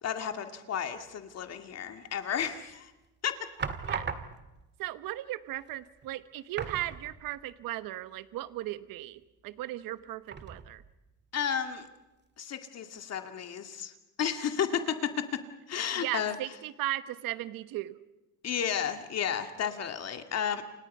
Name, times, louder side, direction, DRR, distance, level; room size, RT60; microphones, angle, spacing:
voice 1, 0.0-2.9 3.2-3.4 11.3-11.9 12.4-13.9 14.2-15.4 15.7-16.4 18.4-20.6, left 8 dB, 45° left, 7 dB, 2.2 m, -32 dB
sound 1, 2.3-2.8 3.6-4.7 5.6-5.7 6.0-6.1 6.5-7.5 7.8-7.9 10.3-11.0 11.5-11.6, right 5 dB, 30° right, 1.9 m, -38 dB
voice 2, 4.8-10.8 15.9-18.0, right 15 dB, 65° right, 13 dB, 1.3 m, -37 dB
29.0 x 27.5 x 5.5 m, 1.0 s
cardioid pair, 135°, 36 cm